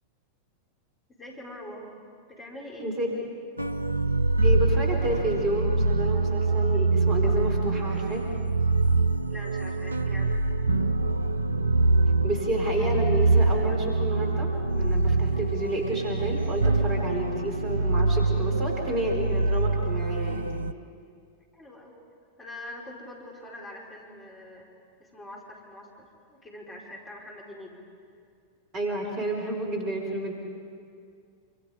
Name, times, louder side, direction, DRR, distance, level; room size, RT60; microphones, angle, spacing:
voice 1, 1.1-1.9 2.3-2.9 9.3-10.4 21.5-21.9 22.4-24.7 25.0-27.8, left 1 dB, 20° left, -2 dB, 4.8 m, -43 dB
sound 1, 3.6-20.7, right 3 dB, 80° right, 0.4 m, -24 dB
voice 2, 4.4-8.2 12.2-20.5 28.7-30.3, right 1 dB, 35° right, 1 dB, 4.5 m, -30 dB
27.0 x 26.0 x 5.1 m, 2.3 s
figure-of-eight pair, 90°, 0 cm